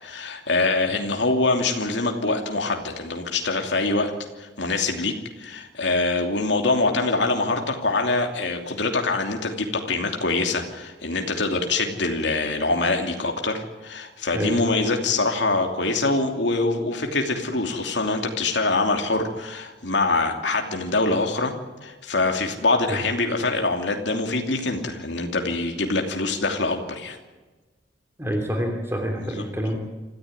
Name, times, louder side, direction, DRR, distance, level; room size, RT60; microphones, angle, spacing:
voice 1, 0.0-4.1 4.4-21.5 21.8-27.2 29.2-29.4, left 3 dB, 75° left, 3 dB, 2.9 m, -24 dB
voice 2, 28.2-29.8, equal, 15° right, 2 dB, 2.9 m, -27 dB
27.0 x 15.0 x 9.6 m, 1.2 s
head